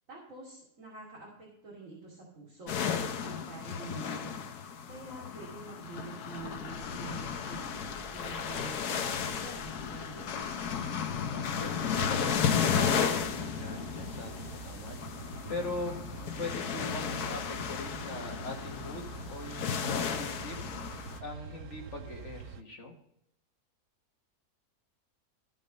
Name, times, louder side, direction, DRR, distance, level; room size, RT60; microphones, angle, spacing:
voice 1, 0.1-4.4 4.9-10.6, right 3 dB, 55° right, -6 dB, 3.1 m, -47 dB
sound 1, 2.7-21.2, left 7 dB, 75° left, 1.4 m, -34 dB
sound 2, 6.4-13.3, left 2 dB, ahead, 3.2 m, -51 dB
voice 2, 11.3-15.9 16.4-20.6 21.2-22.9, left 2 dB, 50° left, 2 dB, 2.0 m, -41 dB
sound 3, 13.2-22.6, right 6 dB, 70° right, 1.2 m, -46 dB
15.0 x 5.9 x 5.4 m, 0.79 s
omnidirectional pair, 1.7 m